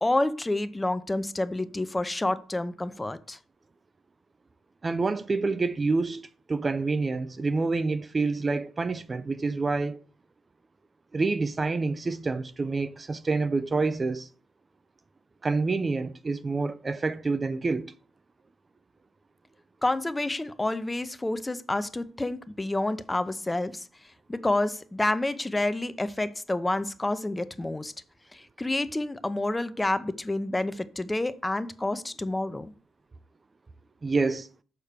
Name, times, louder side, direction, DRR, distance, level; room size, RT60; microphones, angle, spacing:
voice 1, 0.0-3.4 19.8-23.8 24.3-27.9 28.3-32.7, left 2 dB, 15° left, 0.6 m, -29 dB
voice 2, 4.8-10.0 11.1-14.3 15.4-17.9 34.0-34.5, right 3 dB, 30° right, 0.4 m, -27 dB
6.7 x 4.3 x 6.7 m
cardioid pair, 90°, 0 cm